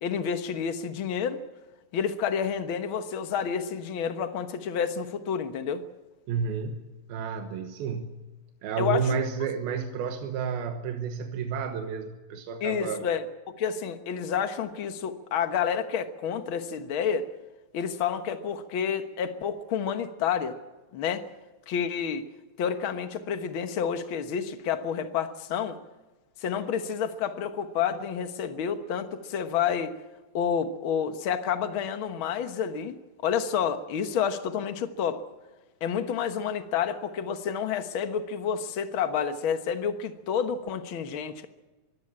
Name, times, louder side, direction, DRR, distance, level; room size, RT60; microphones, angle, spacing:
voice 1, 0.0-1.4 1.9-5.8 8.8-9.1 12.6-17.3 17.7-20.6 20.9-21.2 21.7-22.3 22.6-25.8 26.4-30.0 30.3-33.0 33.2-35.2 35.8-41.5, left 7 dB, 80° left, 9 dB, 1.1 m, -29 dB
voice 2, 6.3-8.1 8.6-13.1, right 6 dB, 90° right, 6 dB, 3.1 m, -31 dB
23.0 x 16.5 x 8.7 m, 1.2 s
omnidirectional pair, 4.2 m